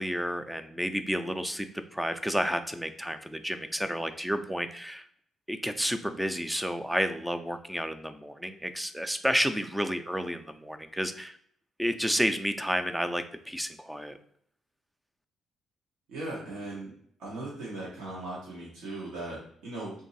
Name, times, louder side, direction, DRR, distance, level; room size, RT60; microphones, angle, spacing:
voice 1, 0.0-1.7 1.9-5.0 5.5-11.4 11.8-14.2, equal, 5° right, 9 dB, 0.3 m, -31 dB
voice 2, 16.1-16.9 17.2-19.9, right 2 dB, 90° right, -6 dB, 1.0 m, -38 dB
3.0 x 2.6 x 3.9 m, 0.64 s
cardioid pair, 90°, 0 cm